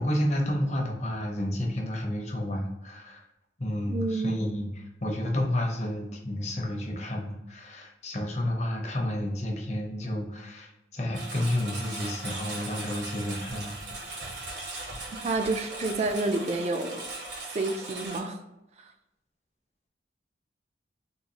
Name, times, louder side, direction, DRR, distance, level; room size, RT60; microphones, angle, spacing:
voice 1, 0.0-3.2 3.6-13.8, left 1 dB, 40° left, 0 dB, 0.7 m, -30 dB
voice 2, 3.9-4.4 15.2-17.1 17.4-18.4 18.8-18.9, right 2 dB, 35° right, 6 dB, 0.3 m, -29 dB
Engine, 11.1-18.2, right 2 dB, 75° right, 0.9 m, -38 dB
3.7 x 2.3 x 2.8 m, 0.93 s
head